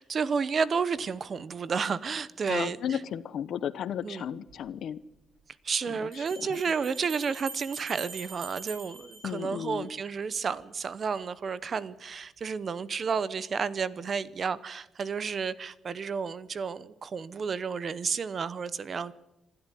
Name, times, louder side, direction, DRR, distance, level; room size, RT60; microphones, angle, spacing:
voice 1, 0.0-2.8 4.0-4.2 5.6-19.1, right 5 dB, 35° right, 0.8 m, -31 dB
voice 2, 2.5-5.0 5.9-6.6 9.2-9.9, left 9 dB, 60° left, 1.0 m, -34 dB
Bell, 4.5-4.6 6.1-10.0, right 5 dB, 75° right, 6.2 m, -44 dB
26.5 x 13.0 x 9.9 m
cardioid pair, 180°, 0 cm